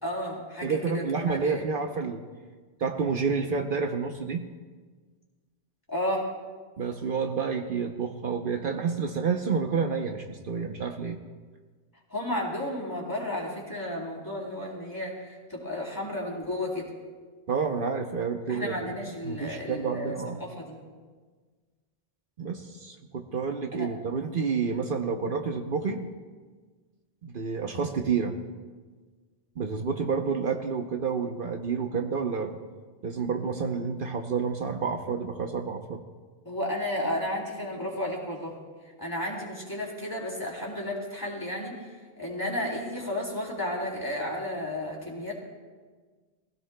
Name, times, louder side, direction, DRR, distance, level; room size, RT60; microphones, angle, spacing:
voice 1, 0.0-1.6 5.9-6.3 12.1-16.9 18.5-20.1 20.4-20.8 23.7-23.9 24.6-24.8 36.4-38.5 39.0-41.8 42.2-45.3, left 1 dB, 20° left, -4 dB, 3.2 m, -33 dB
voice 2, 0.6-2.2 2.8-4.5 6.8-11.2 17.5-18.9 19.2-20.4 22.4-26.1 27.2-28.3 29.6-32.6 33.0-36.0, right 5 dB, 60° right, 4 dB, 0.9 m, -29 dB
23.0 x 16.0 x 2.2 m, 1.4 s
omnidirectional pair, 1.1 m